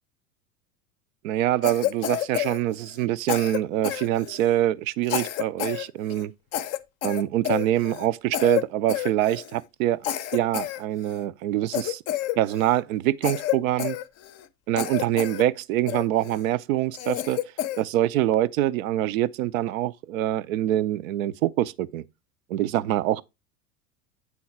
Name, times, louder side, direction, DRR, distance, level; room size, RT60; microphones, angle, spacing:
voice 1, 1.2-6.3 7.0-10.0 10.3-12.0 12.3-14.0 14.7-17.4 17.8-22.0 22.5-23.2, right 13 dB, 60° right, 0.6 m, -25 dB
Cough, 1.6-3.0 3.3-4.6 5.0-5.8 6.1-6.2 6.5-8.1 8.3-8.6 8.9-9.6 10.0-11.2 11.7-12.8 13.2-14.5 14.8-15.4 15.9-16.4 16.9-17.8, left 12 dB, 35° left, 0.6 m, -30 dB
8.5 x 3.8 x 4.3 m
hypercardioid pair, 85°, 46 cm